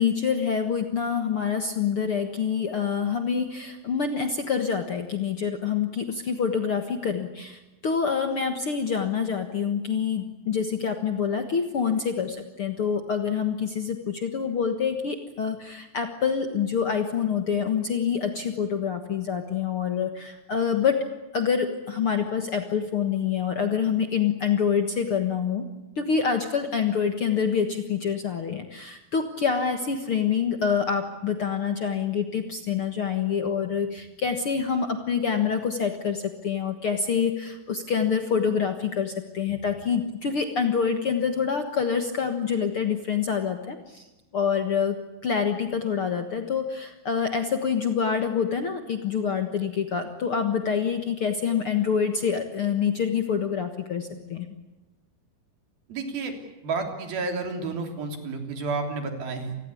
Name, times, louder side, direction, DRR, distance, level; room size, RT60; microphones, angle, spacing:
voice 1, 0.0-21.0 21.3-25.7 26.0-44.1 44.3-45.0 45.2-54.5, left 6 dB, 50° left, 6 dB, 1.7 m, -26 dB
voice 2, 55.9-56.3 56.6-59.6, right 4 dB, 75° right, 5 dB, 5.1 m, -30 dB
28.0 x 20.5 x 8.5 m, 1.0 s
omnidirectional pair, 4.3 m